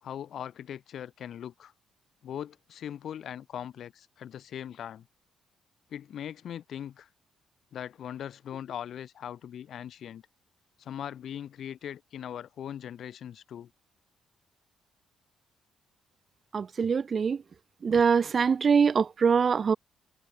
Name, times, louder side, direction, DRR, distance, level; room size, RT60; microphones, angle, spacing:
voice 1, 0.0-1.7 2.2-5.1 5.9-7.1 7.7-10.2 10.8-13.7, left 9 dB, 65° left, 5.4 m, -40 dB
voice 2, 16.5-17.4 17.8-19.7, right 6 dB, 45° right, 0.7 m, -23 dB
cardioid pair, 90°, 0 cm